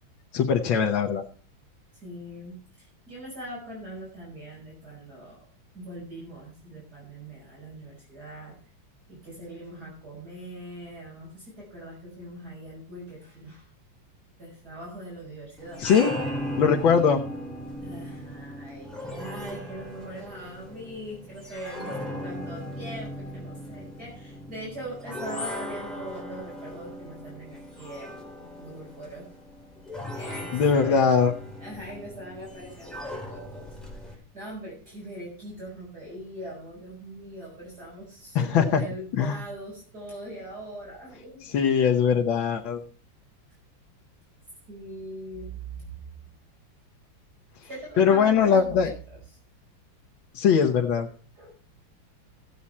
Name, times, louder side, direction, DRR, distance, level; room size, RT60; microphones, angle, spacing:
voice 1, 0.3-1.2 15.8-16.1 16.6-17.2 30.5-31.3 38.4-38.8 39.2-39.4 41.4-42.8 48.0-48.9 50.3-51.1, left 6 dB, 75° left, 1 dB, 1.8 m, -21 dB
voice 2, 1.9-5.5 5.7-8.5 9.1-13.7 14.4-15.8 17.8-29.3 30.1-31.1 31.6-41.9 44.7-46.1 47.7-49.2 51.4-51.5, right 1 dB, 50° right, -4 dB, 5.6 m, -41 dB
sound 1, 15.6-34.1, equal, ahead, 3.9 m, -38 dB
15.0 x 8.5 x 4.3 m, 0.41 s
omnidirectional pair, 2.2 m